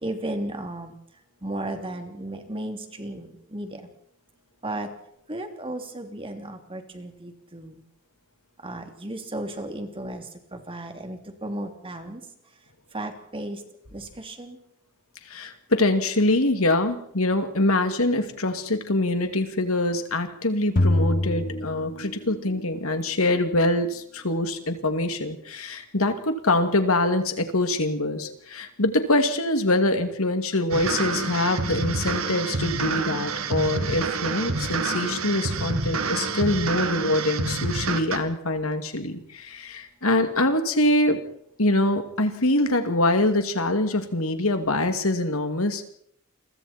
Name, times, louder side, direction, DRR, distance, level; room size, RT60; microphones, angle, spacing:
voice 1, 0.0-0.9 1.4-3.9 4.6-4.9 5.3-7.8 8.6-10.2 10.5-12.2 12.9-13.6 13.9-14.6, right 1 dB, 25° right, 5 dB, 3.1 m, -34 dB
voice 2, 15.3-41.2 41.6-45.9, left 2 dB, 90° left, 7 dB, 2.7 m, -24 dB
sound 1, 20.8-22.6, left 1 dB, 45° left, 1.2 m, -24 dB
sound 2, 30.7-38.2, right 3 dB, 85° right, 2.2 m, -28 dB
29.0 x 23.5 x 4.5 m, 0.68 s
head